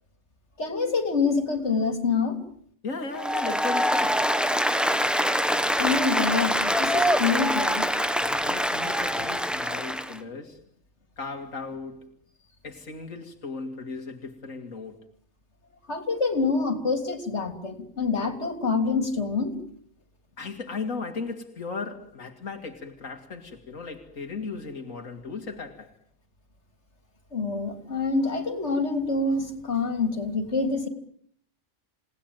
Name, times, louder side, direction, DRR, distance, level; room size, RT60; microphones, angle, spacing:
voice 1, 0.6-2.4 5.8-7.9 15.9-19.5 27.3-30.9, left 4 dB, 60° left, 3.6 m, -26 dB
voice 2, 2.8-4.3 8.4-10.6 11.2-12.1 12.6-15.0 20.4-25.9, left 4 dB, 90° left, 2.6 m, -36 dB
Applause, 3.1-10.2, equal, ahead, 1.6 m, -24 dB
28.5 x 19.0 x 9.0 m
omnidirectional pair, 1.3 m